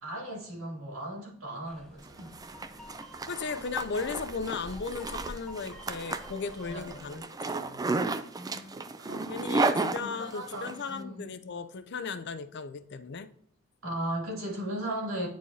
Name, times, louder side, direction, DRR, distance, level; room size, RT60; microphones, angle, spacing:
voice 1, 0.0-2.4 6.7-7.3 8.4-11.3 13.8-15.3, right 1 dB, 80° right, 2.9 m, -37 dB
sound 1, 1.6-7.2, left 1 dB, 5° left, 0.9 m, -48 dB
Zipper (clothing), 2.1-10.7, right 3 dB, 20° right, 0.3 m, -33 dB
voice 2, 3.3-7.9 9.3-13.3, left 4 dB, 55° left, 0.5 m, -36 dB
10.5 x 4.7 x 2.8 m
head